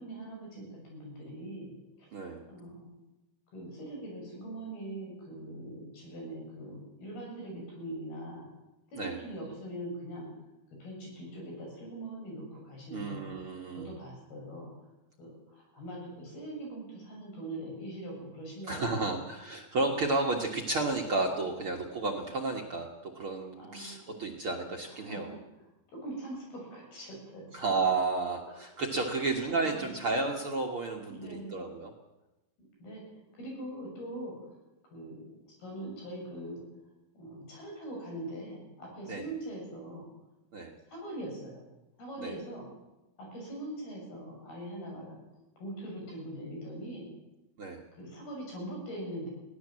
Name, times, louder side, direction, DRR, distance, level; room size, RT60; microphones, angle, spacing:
voice 1, 0.0-1.7 2.0-2.1 2.5-3.0 3.5-8.5 8.9-10.3 10.8-13.3 13.7-14.8 15.2-19.2 19.8-20.0 21.5-21.6 23.5-24.0 24.9-25.4 25.9-27.5 29.5-29.9 31.1-31.6 32.6-33.0 33.3-34.4 34.9-36.6 37.2-40.1 40.9-41.6 42.0-42.6 43.2-45.2 45.6-47.1 47.9-49.3, right 1 dB, 80° left, 0 dB, 9.3 m, -42 dB
voice 2, 12.9-13.9 18.7-25.4 27.5-31.9 39.1-39.2 40.5-40.7 42.2-42.3 47.6-47.8, right 3 dB, 50° right, 1 dB, 1.8 m, -32 dB
22.0 x 17.0 x 7.6 m, 0.99 s
omnidirectional pair, 4.4 m